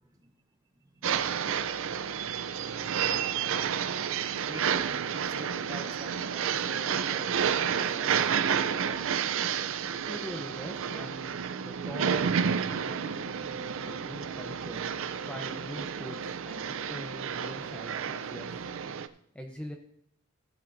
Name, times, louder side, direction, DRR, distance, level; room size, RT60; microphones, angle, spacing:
sound 1, 1.0-19.1, right 7 dB, 70° right, 0.5 m, -30 dB
voice 1, 4.5-9.1, right 1 dB, 15° right, 4 dB, 1.2 m, -48 dB
voice 2, 10.1-14.8 15.2-18.6 19.3-19.8, equal, 5° left, 2 dB, 0.8 m, -43 dB
15.0 x 9.6 x 2.6 m, 0.70 s
head